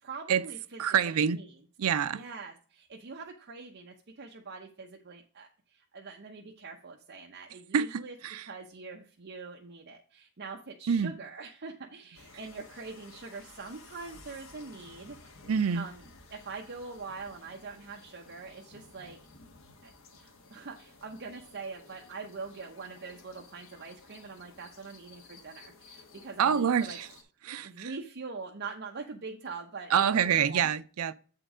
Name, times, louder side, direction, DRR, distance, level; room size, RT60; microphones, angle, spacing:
voice 1, 0.0-1.5 2.1-8.1 8.4-15.4 15.7-16.0 16.3-19.2 19.8-27.0 27.6-30.7, right 4 dB, 50° right, 0.8 m, -43 dB
voice 2, 0.8-1.4 1.8-2.2 7.7-8.5 10.9-11.1 15.5-15.8 26.4-27.1 27.4-27.9 29.9-31.2, right 7 dB, 80° right, 0.5 m, -27 dB
sound 1, 12.1-27.2, left 3 dB, 65° left, 1.3 m, -55 dB
7.9 x 4.5 x 4.9 m
head